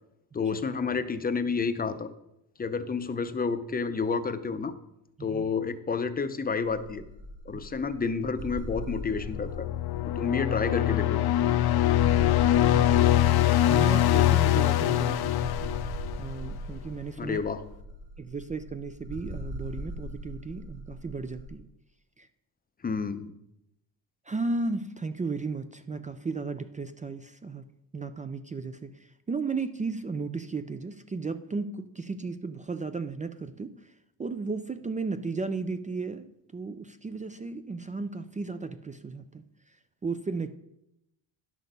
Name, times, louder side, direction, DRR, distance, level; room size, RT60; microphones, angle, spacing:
voice 1, 0.3-2.1 2.6-4.7 5.2-7.0 7.5-9.7 10.2-11.3 17.2-17.6 22.8-23.3, left 5 dB, 20° left, 10 dB, 0.6 m, -30 dB
sound 1, 6.6-21.5, equal, 70° right, 2.8 m, -41 dB
sound 2, 9.2-16.6, left 13 dB, 60° left, 0.6 m, -23 dB
voice 2, 12.7-13.1 13.7-15.7 16.2-17.4 18.2-21.7 22.2-22.3 24.3-27.6 27.9-28.9 29.3-33.9 34.2-39.4 40.0-40.5, right 4 dB, 20° right, 11 dB, 0.3 m, -34 dB
10.5 x 6.2 x 5.2 m, 0.85 s
cardioid pair, 125°, 43 cm